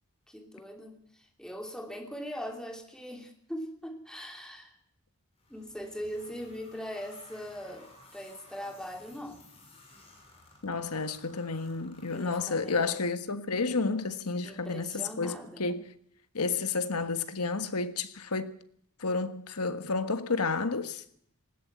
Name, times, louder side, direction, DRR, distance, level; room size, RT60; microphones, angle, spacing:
voice 1, 0.3-1.0 1.4-4.8 5.5-9.4 12.1-12.9 14.4-15.6, equal, 5° left, 2.9 m, -41 dB
sound 1, 5.4-12.9, left 2 dB, 25° left, 6.9 m, -56 dB
voice 2, 10.6-15.9 16.3-18.5 19.0-21.0, left 4 dB, 85° left, 1.5 m, -31 dB
19.5 x 16.0 x 8.3 m
head